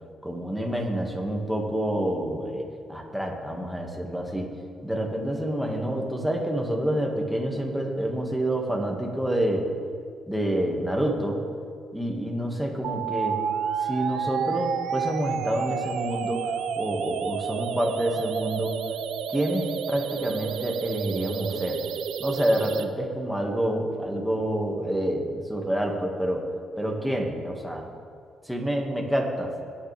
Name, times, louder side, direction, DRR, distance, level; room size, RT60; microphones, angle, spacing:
voice 1, 0.2-2.6 2.9-4.5 4.8-9.7 10.3-11.4 11.9-13.4 13.8-18.8 19.3-21.8 22.2-26.4 26.8-27.9 28.5-29.5, right 1 dB, ahead, 0 dB, 2.1 m, -28 dB
sound 1, 12.8-22.8, right 7 dB, 75° right, 0.6 m, -30 dB
20.5 x 9.3 x 3.5 m, 2.2 s
cardioid pair, 90°, 0 cm